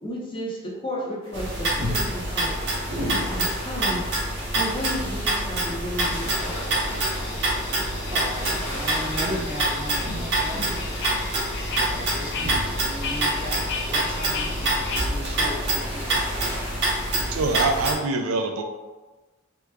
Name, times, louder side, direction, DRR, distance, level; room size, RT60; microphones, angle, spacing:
voice 1, 0.0-2.6 3.0-4.0 4.5-6.6 6.8-7.1, equal, 25° left, -5 dB, 0.7 m, -33 dB
sound 1, 1.2-17.2, left 1 dB, 85° left, 1.0 m, -41 dB
sound 2, 1.3-17.9, right 1 dB, 55° right, 1.0 m, -26 dB
sound 3, 6.0-15.0, left 5 dB, 55° left, 0.4 m, -36 dB
voice 2, 8.1-10.7 11.5-16.6, equal, 30° right, -2 dB, 0.5 m, -37 dB
voice 3, 17.3-18.6, right 3 dB, 80° right, 4 dB, 0.4 m, -24 dB
2.9 x 2.3 x 3.3 m, 1.2 s
head